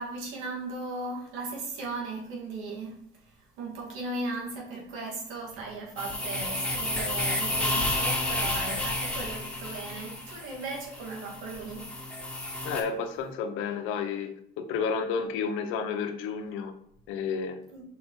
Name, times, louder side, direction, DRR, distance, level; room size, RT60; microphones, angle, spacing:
voice 1, 0.0-3.0 3.2-11.9 17.7-17.8, right 2 dB, 85° right, -2 dB, 2.2 m, -37 dB
sound 1, 6.0-12.8, left 1 dB, 5° left, 1.8 m, -31 dB
voice 2, 12.6-16.7 17.1-17.6, left 5 dB, 85° left, 7 dB, 0.8 m, -31 dB
5.2 x 4.2 x 4.7 m, 0.68 s
cardioid pair, 90°, 20 cm